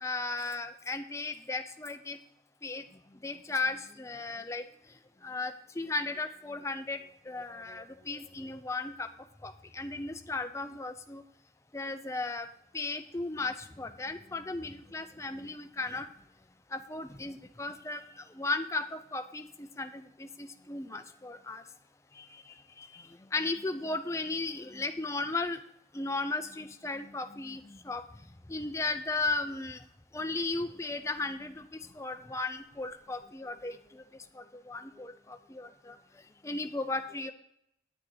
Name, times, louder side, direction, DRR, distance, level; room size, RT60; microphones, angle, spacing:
voice 1, 0.0-2.2 2.6-2.8 3.2-4.6 5.2-7.0 7.3-9.1 9.4-11.2 11.7-12.5 12.7-16.1 16.7-21.6 22.2-22.4 22.8-25.6 25.9-28.0 28.5-29.8 30.1-31.7 31.9-34.0 34.3-36.0 36.4-37.3, left 3 dB, 15° left, 7 dB, 0.5 m, -36 dB
9.5 x 8.8 x 3.9 m, 0.74 s
head